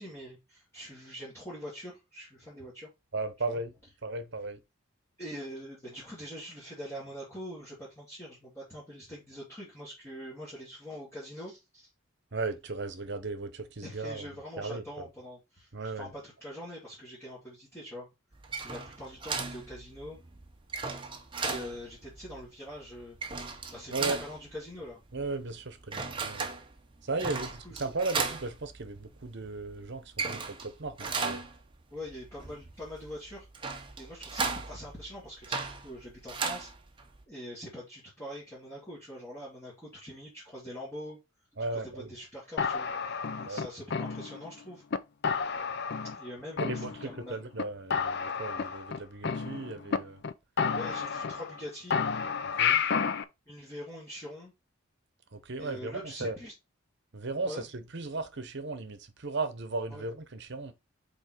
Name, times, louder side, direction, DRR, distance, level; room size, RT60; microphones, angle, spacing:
voice 1, 0.0-2.9 3.5-3.6 5.2-11.9 13.8-18.1 18.6-20.2 21.4-23.4 23.7-25.0 27.2-27.8 31.9-33.5 34.0-36.7 37.3-41.2 41.7-44.8 46.1-47.4 50.7-52.0 53.5-54.5 55.6-56.5 57.4-57.6 59.9-60.1, equal, 10° left, 2.8 m, -44 dB
voice 2, 3.1-3.7 4.0-4.6 12.3-14.3 14.6-15.1 15.7-16.1 23.9-24.2 25.1-26.5 27.0-27.5 27.7-31.4 41.6-42.1 43.4-43.6 46.6-50.2 52.6-52.8 55.3-56.4 57.1-60.7, right 3 dB, 55° right, 1.0 m, -36 dB
sound 1, 18.3-37.2, right 4 dB, 25° right, 0.8 m, -37 dB
sound 2, 42.6-44.5 44.9-45.0 45.2-46.3 46.6-47.3 47.6-47.7 47.9-50.0 50.2-50.3 50.6-51.6 51.9-53.2, left 6 dB, 50° left, 0.5 m, -31 dB
5.5 x 4.3 x 4.5 m
head